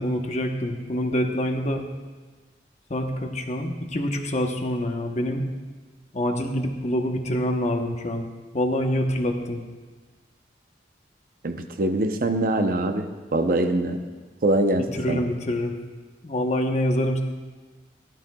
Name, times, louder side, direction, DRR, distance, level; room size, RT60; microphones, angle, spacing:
voice 1, 0.0-1.9 2.9-5.5 6.1-8.3 8.5-9.6 14.9-15.7 16.2-17.2, equal, 40° left, 3 dB, 1.0 m, -26 dB
voice 2, 11.4-13.1 13.3-14.0 14.4-15.2, right 1 dB, 50° right, 6 dB, 0.7 m, -23 dB
16.5 x 11.5 x 2.3 m, 1.3 s
head